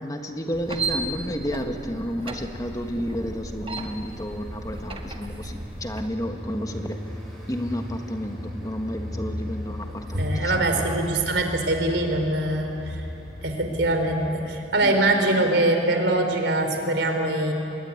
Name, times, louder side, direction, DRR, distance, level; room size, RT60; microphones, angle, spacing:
voice 1, 0.0-7.0 7.5-10.8 14.8-14.9, equal, 20° left, 4 dB, 1.6 m, -31 dB
sound 1, 0.5-6.1, right 3 dB, 30° right, 1.7 m, -35 dB
sound 2, 2.5-14.3, left 1 dB, ahead, 7.0 m, -38 dB
voice 2, 10.1-13.1 13.4-17.5, right 2 dB, 75° right, 5 dB, 3.7 m, -23 dB
26.0 x 21.5 x 9.6 m, 2.9 s
head